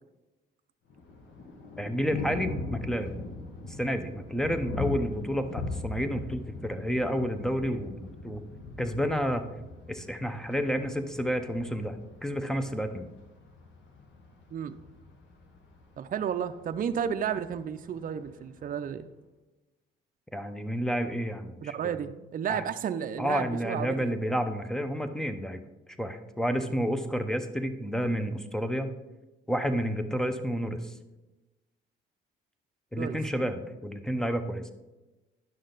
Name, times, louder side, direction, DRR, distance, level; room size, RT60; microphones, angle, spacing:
Thunder, 0.9-18.9, left 3 dB, 70° left, 1.4 m, -41 dB
voice 1, 1.8-3.2 3.6-8.4 8.8-9.4 9.9-12.0 12.2-13.1 20.3-22.0 22.5-22.6 23.2-25.6 26.0-28.9 29.5-30.9 32.9-34.7, equal, 5° left, 8 dB, 0.8 m, -30 dB
voice 2, 16.0-19.1 21.6-24.1 33.0-33.2, right 8 dB, 45° right, 9 dB, 0.5 m, -32 dB
10.5 x 6.3 x 3.9 m, 1.1 s
cardioid pair, 90°, 20 cm